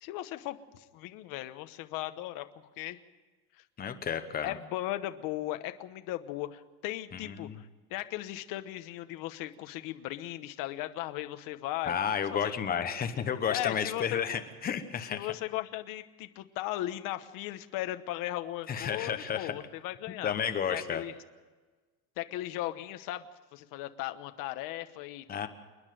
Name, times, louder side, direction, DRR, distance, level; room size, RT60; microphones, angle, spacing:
voice 1, 0.0-2.5 2.8-3.0 4.4-11.9 12.3-12.5 13.5-14.2 15.1-20.3 20.7-21.1 22.2-23.3 23.5-25.5, left 15 dB, 45° left, 10 dB, 1.1 m, -37 dB
voice 2, 3.8-4.5 7.1-7.5 11.9-15.3 18.7-19.5 20.2-21.0 25.3-25.5, left 8 dB, 20° left, 8 dB, 1.0 m, -32 dB
28.5 x 9.9 x 9.1 m, 1.3 s
cardioid pair, 170°, 46 cm